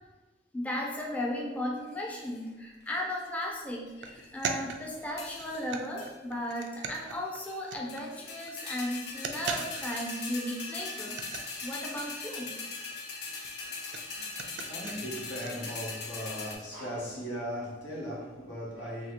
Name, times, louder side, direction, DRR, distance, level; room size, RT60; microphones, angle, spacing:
voice 1, 0.5-12.6, left 1 dB, 10° left, 0.4 m, -36 dB
sound 1, 1.9-2.4 2.9-3.4 3.9-4.6 5.2-5.7 6.0-6.1 6.6-6.7 6.9-7.6 7.9-16.5, left 4 dB, 60° left, 0.6 m, -40 dB
sound 2, 4.0-8.2 8.5-8.6 8.9-10.2 10.5-10.6 10.8-15.5, right 5 dB, 75° right, 0.4 m, -41 dB
voice 2, 14.0-19.1, equal, 80° left, 1.2 m, -38 dB
2.8 x 2.7 x 4.1 m
head